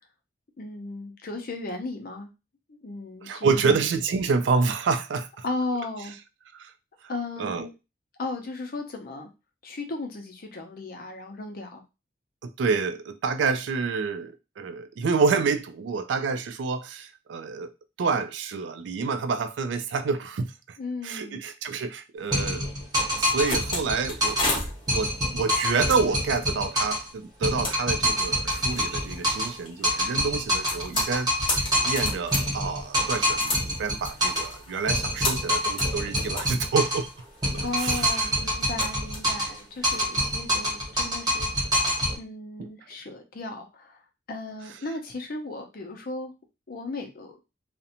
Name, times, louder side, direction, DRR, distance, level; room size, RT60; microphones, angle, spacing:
voice 1, 0.6-2.3 2.7-3.8 5.4-6.2 7.1-7.7 8.2-9.3 9.6-11.8 20.8-21.4 37.6-41.5 42.2-44.0 44.3-46.3 46.7-47.4, left 2 dB, 50° left, 0.6 m, -35 dB
voice 2, 3.2-5.4 6.5-6.7 7.4-7.7 12.4-17.7 18.0-20.8 21.0-22.7 23.1-24.6 24.9-37.1 37.8-38.3 42.6-42.7, right 4 dB, 70° right, 0.3 m, -28 dB
sound 1, 22.3-24.5 24.9-27.1 27.4-29.6 29.8-34.5 34.9-37.1 37.4-39.6 39.8-42.1, equal, 20° right, 0.9 m, -26 dB
sound 2, 23.1-40.3, left 2 dB, 25° left, 0.9 m, -35 dB
2.5 x 2.1 x 2.8 m
head